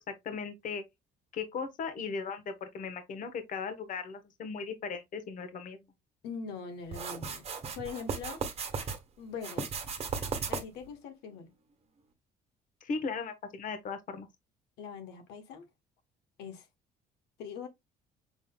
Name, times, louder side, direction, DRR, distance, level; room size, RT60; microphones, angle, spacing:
voice 1, 0.1-0.8 1.3-5.8 12.8-14.3, left 5 dB, 50° left, 1.0 m, -37 dB
voice 2, 6.2-7.4 7.7-8.4 9.2-9.7 10.5-11.5 14.8-15.7 16.4-16.7 17.4-17.7, left 6 dB, 85° left, 1.0 m, -42 dB
sound 1, 6.9-9.0 9.4-10.9, right 5 dB, 35° right, 1.1 m, -36 dB
6.0 x 3.7 x 2.2 m
cardioid pair, 110°, 17 cm